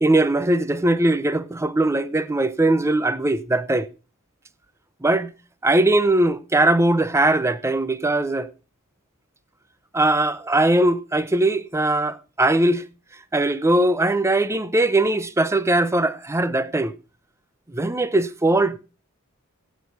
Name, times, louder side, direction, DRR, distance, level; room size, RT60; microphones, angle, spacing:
voice 1, 0.0-3.9 5.0-5.3 5.6-8.5 9.9-12.8 13.3-17.0 17.7-18.8, right 2 dB, 10° right, 0.6 m, -20 dB
15.5 x 8.2 x 4.6 m
head